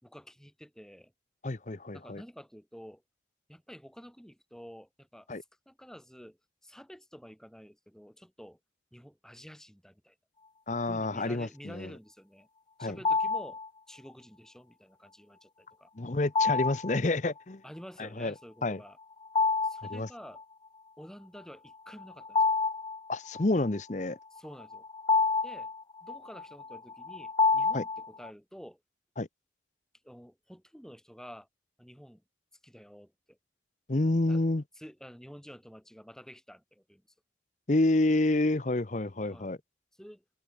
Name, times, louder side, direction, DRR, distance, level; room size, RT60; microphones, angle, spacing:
voice 1, 0.0-1.1 1.9-3.0 3.5-5.3 5.7-8.6 8.9-10.2 10.9-12.5 12.8-13.6 13.9-15.9 17.6-19.0 19.6-20.4 21.0-22.4 24.3-24.9 25.4-25.7 26.0-28.8 30.0-31.5 31.8-32.2 32.6-33.4 34.3-34.4 34.7-37.0 39.3-39.5 40.0-40.2, equal, 5° left, 4.8 m, -49 dB
voice 2, 1.4-2.2 5.3-5.4 10.7-11.9 12.8-13.0 16.0-17.6 18.0-18.3 18.6-18.8 19.9-20.1 23.1-24.2 27.7-27.8 29.2-29.3 33.9-34.6 37.7-39.6, left 2 dB, 40° left, 0.8 m, -28 dB
sound 1, 13.0-13.7 16.4-17.0 19.3-20.0 20.4-20.5 21.9-23.4 24.4-28.3, left 4 dB, 25° left, 0.5 m, -28 dB
open air
head